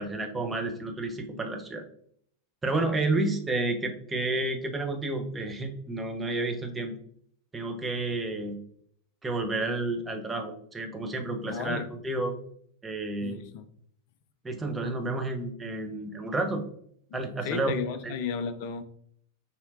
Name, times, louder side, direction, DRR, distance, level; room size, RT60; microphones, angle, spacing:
voice 1, 0.0-1.8 2.6-6.9 7.5-8.6 9.2-12.4 12.8-13.4 14.4-16.6 17.1-17.7 18.0-18.1, right 2 dB, 10° right, 4 dB, 0.6 m, -30 dB
voice 2, 11.5-11.9 13.2-13.7 17.1-18.8, left 6 dB, 45° left, 10 dB, 0.4 m, -34 dB
4.9 x 2.8 x 2.7 m, 0.64 s
figure-of-eight pair, 90°, 0 cm